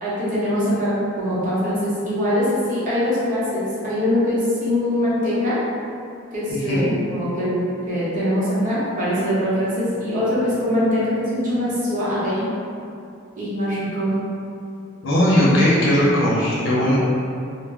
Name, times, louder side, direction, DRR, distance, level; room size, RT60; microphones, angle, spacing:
voice 1, 0.0-5.6 6.3-7.6 7.9-12.5 13.4-14.2, left 1 dB, 40° right, -10 dB, 0.7 m, -22 dB
voice 2, 15.0-17.0, equal, 70° left, -8 dB, 0.7 m, -18 dB
2.0 x 2.0 x 3.4 m, 2.5 s
head